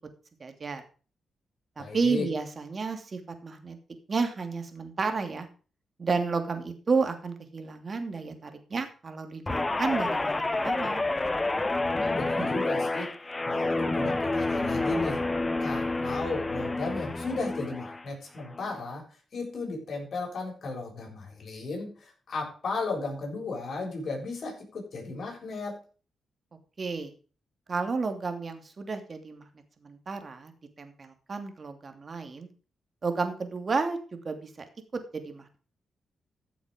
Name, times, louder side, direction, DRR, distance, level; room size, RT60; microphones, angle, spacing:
voice 1, 0.4-0.8 1.8-3.8 4.1-5.5 6.0-11.0 12.4-12.5 26.8-27.1 27.7-29.5 29.8-30.5 30.8-32.5 33.0-34.7 34.9-35.5, right 4 dB, 40° right, 7 dB, 2.6 m, -31 dB
voice 2, 1.8-2.3 11.9-13.1 13.4-15.3 15.6-19.1 19.3-25.8, left 3 dB, 60° left, -1 dB, 7.3 m, -35 dB
Guitar, 9.5-18.0 18.4-18.8, left 2 dB, 20° left, 0.9 m, -29 dB
14.0 x 7.1 x 5.2 m, 0.37 s
cardioid pair, 80°, 0 cm